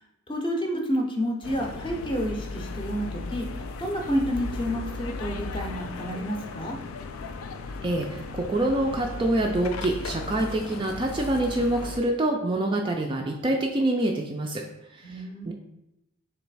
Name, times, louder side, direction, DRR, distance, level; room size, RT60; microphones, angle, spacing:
voice 1, 0.3-3.5 3.8-6.8 15.0-15.5, equal, 25° left, 1 dB, 0.6 m, -29 dB
sound 1, 1.4-12.0, left 3 dB, 90° left, 0.4 m, -36 dB
voice 2, 7.8-14.6 15.0-15.5, right 1 dB, 25° right, 2 dB, 0.3 m, -26 dB
3.2 x 3.1 x 4.6 m, 0.89 s
head